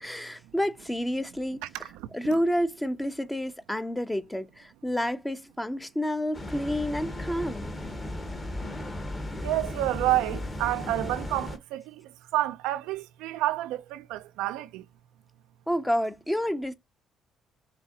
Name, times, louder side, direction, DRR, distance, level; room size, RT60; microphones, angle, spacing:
voice 1, 0.0-1.6 2.1-7.7 15.7-16.7, equal, 10° left, 0.7 m, -29 dB
voice 2, 1.6-2.4 9.4-14.8, right 15 dB, 90° right, 0.3 m, -30 dB
sound 1, 6.3-11.6, left 1 dB, 30° left, 1.5 m, -35 dB
5.8 x 2.8 x 2.7 m
supercardioid pair, 80°, 0 cm